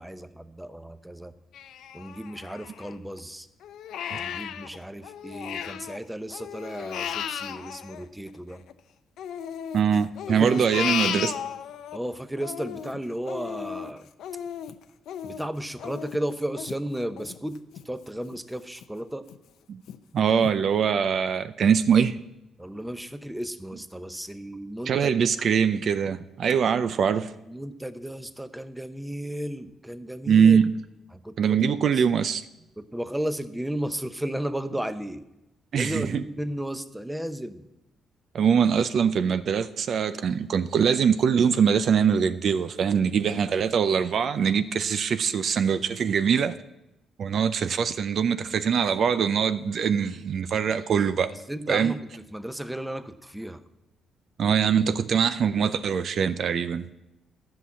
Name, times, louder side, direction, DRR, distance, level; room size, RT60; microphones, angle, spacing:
voice 1, 0.0-1.3 1.9-3.5 4.1-8.6 10.3-10.9 11.9-14.1 15.2-17.6 17.8-19.2 22.6-25.1 27.5-30.6 31.1-32.0 32.8-35.2 35.7-37.7 51.3-52.0 52.3-53.6, right 1 dB, 5° right, 0.7 m, -34 dB
Crying sobbing, 1.5-3.2 3.6-6.0 6.3-8.7 9.2-12.0 12.4-17.8 18.3-18.4 18.8-19.4 19.9-20.0 20.4-20.5, left 9 dB, 80° left, 0.6 m, -35 dB
voice 2, 9.7-11.3 19.7-19.8 20.1-22.2 24.9-27.3 30.3-30.7 31.4-32.4 35.7-36.2 38.3-46.5 47.2-51.3 51.7-52.0 54.4-57.0, right 7 dB, 60° right, 0.5 m, -23 dB
12.5 x 5.8 x 8.3 m
cardioid pair, 90°, 0 cm